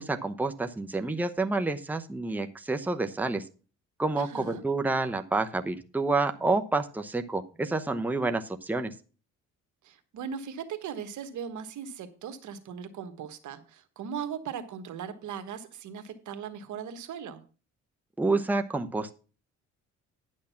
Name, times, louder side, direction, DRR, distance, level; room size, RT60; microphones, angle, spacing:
voice 1, 0.0-3.4 4.0-8.9 18.2-19.1, right 3 dB, 5° right, 6 dB, 0.8 m, -29 dB
voice 2, 4.2-4.6 9.8-17.4, right 7 dB, 75° right, 9 dB, 1.3 m, -38 dB
10.0 x 6.4 x 5.7 m, 0.36 s
cardioid pair, 90°, 30 cm